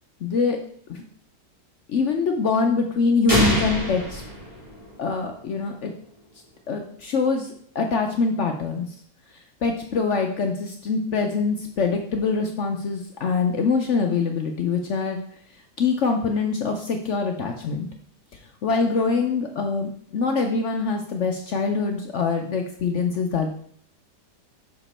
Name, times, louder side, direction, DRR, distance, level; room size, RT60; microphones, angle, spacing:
voice 1, 0.2-0.6 0.9-1.0 1.9-4.2 5.0-5.9 6.7-8.9 9.6-15.2 15.8-17.9 18.6-23.5, left 4 dB, 65° left, 3 dB, 0.7 m, -24 dB
sound 1, 3.3-5.2, equal, 20° right, 2.0 m, -25 dB
6.1 x 5.0 x 4.2 m, 0.62 s
omnidirectional pair, 1.8 m